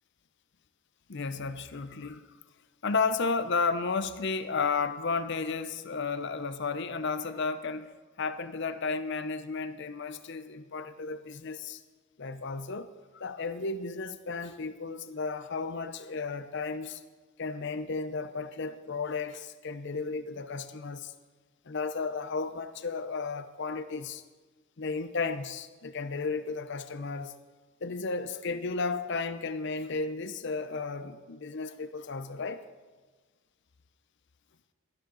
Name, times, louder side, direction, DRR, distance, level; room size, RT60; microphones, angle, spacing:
voice 1, 1.1-2.2 2.8-7.9 8.2-11.8 12.2-17.0 17.4-21.1 21.7-24.2 24.8-27.3 27.8-32.6, left 4 dB, 55° left, 0.6 m, -33 dB
14.0 x 11.5 x 4.0 m
head